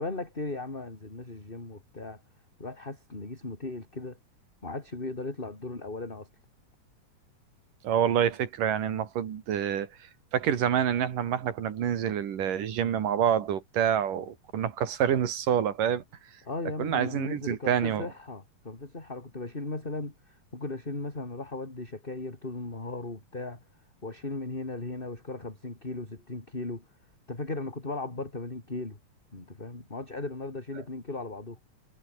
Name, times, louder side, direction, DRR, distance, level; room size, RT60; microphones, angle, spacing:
voice 1, 0.0-2.2 2.6-4.2 4.6-6.3 16.5-23.6 24.0-26.8 27.3-29.0 29.3-31.6, left 2 dB, 15° left, 3.6 m, -37 dB
voice 2, 7.8-9.9 10.3-16.0 16.8-18.1, right 9 dB, 80° right, 3.8 m, -27 dB
omnidirectional pair, 3.7 m